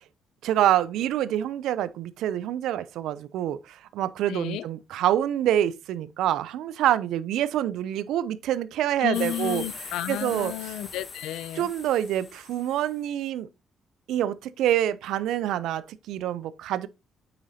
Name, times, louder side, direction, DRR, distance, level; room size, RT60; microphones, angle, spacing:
voice 1, 0.4-9.6 10.1-10.5 11.6-13.5 14.1-16.9, right 11 dB, 85° right, 0.4 m, -26 dB
voice 2, 4.3-4.7 9.0-11.7, left 12 dB, 90° left, 0.4 m, -32 dB
sound 1, 9.1-13.0, left 4 dB, 40° left, 1.0 m, -41 dB
8.5 x 5.0 x 2.7 m
cardioid pair, 90°, 0 cm